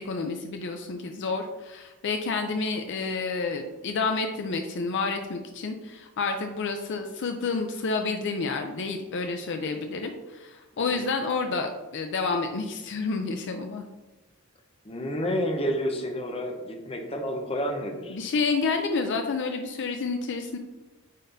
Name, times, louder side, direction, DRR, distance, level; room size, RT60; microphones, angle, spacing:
voice 1, 0.0-13.9 18.1-20.6, left 4 dB, 55° left, 5 dB, 0.5 m, -29 dB
voice 2, 14.8-18.2, equal, 25° left, 3 dB, 0.8 m, -30 dB
8.9 x 4.2 x 2.6 m, 1.1 s
head